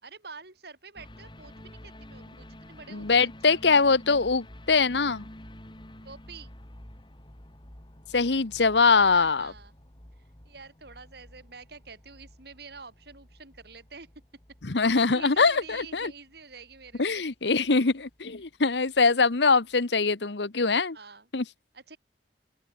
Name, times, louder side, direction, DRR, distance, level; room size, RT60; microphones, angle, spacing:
voice 1, 0.0-3.6 6.0-6.5 9.1-9.7 10.4-14.1 15.1-17.2 20.9-21.3 21.7-22.0, right 4 dB, 60° right, 5.1 m, -47 dB
sound 1, 1.0-19.4 19.7-19.8, left 1 dB, 25° left, 2.7 m, -50 dB
voice 2, 2.9-5.3 8.1-9.5 14.6-16.1 17.0-21.0 21.3-21.4, left 4 dB, 75° left, 1.1 m, -23 dB
open air
head